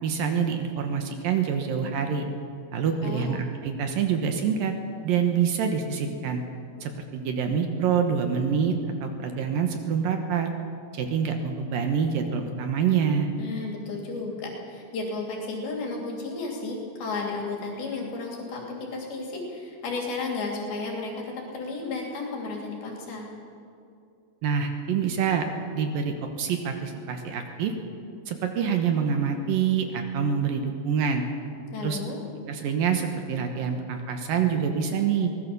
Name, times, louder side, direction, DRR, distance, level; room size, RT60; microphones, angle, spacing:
voice 1, 0.0-2.3 2.7-4.7 5.0-6.4 6.8-8.7 9.0-10.5 10.9-13.3 24.4-25.5 25.7-27.7 28.3-31.2 31.8-32.0 32.5-35.3, right 7 dB, 70° right, 5 dB, 2.9 m, -26 dB
voice 2, 13.4-23.3 31.7-32.2, left 3 dB, 85° left, 0 dB, 5.0 m, -33 dB
22.5 x 18.5 x 6.8 m, 2.5 s
omnidirectional pair, 4.3 m